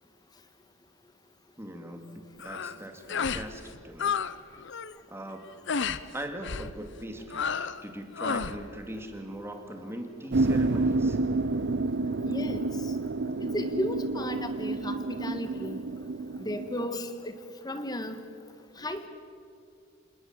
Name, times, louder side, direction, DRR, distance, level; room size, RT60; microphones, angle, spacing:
voice 1, 1.6-4.2 5.1-5.5 6.1-7.6 7.8-11.2, right 1 dB, 10° right, 5 dB, 2.4 m, -40 dB
sound 1, 2.4-2.8 3.1-3.5 3.7-4.3 4.6-4.9 5.7-6.0 6.4-6.7 7.3-7.8 8.2-8.6, left 6 dB, 60° left, 0.8 m, -31 dB
sound 2, 10.3-16.9, right 3 dB, 60° right, 0.6 m, -29 dB
voice 2, 12.2-12.9 13.4-15.8 16.4-17.4 17.6-18.2 18.8-19.1, left 1 dB, 20° left, 9 dB, 1.7 m, -34 dB
28.0 x 19.5 x 7.5 m, 2.4 s
head